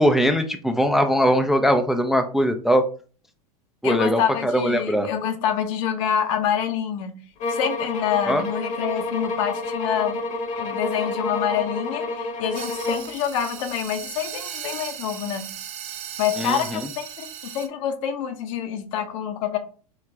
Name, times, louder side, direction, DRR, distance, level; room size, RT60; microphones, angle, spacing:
voice 1, 0.0-2.8 3.8-5.1 8.3-8.4 16.4-16.8, equal, ahead, 6 dB, 0.4 m, -20 dB
voice 2, 3.8-7.2 7.5-10.2 10.6-15.5 16.2-19.6, left 9 dB, 60° left, 7 dB, 1.0 m, -26 dB
sound 1, 7.4-13.2, left 2 dB, 40° left, 1.1 m, -29 dB
Grinding steel, 12.5-17.7, right 10 dB, 35° right, 0.8 m, -36 dB
4.8 x 3.2 x 3.4 m, 0.40 s
hypercardioid pair, 105°, 19 cm